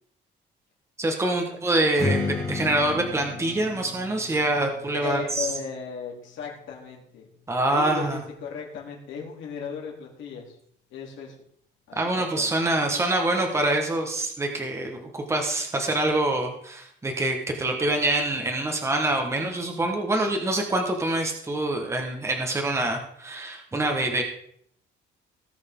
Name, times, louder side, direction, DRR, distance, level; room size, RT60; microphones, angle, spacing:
voice 1, 1.0-5.5 7.5-8.2 11.9-24.2, right 2 dB, 15° right, 3 dB, 1.5 m, -25 dB
Strum, 2.0-7.2, left 4 dB, 20° left, 1.7 m, -34 dB
voice 2, 4.9-7.3 7.6-10.6 10.9-11.3 11.9-12.5, left 6 dB, 75° left, -1 dB, 3.1 m, -36 dB
18.5 x 6.3 x 3.7 m, 0.66 s
cardioid pair, 155°, 20 cm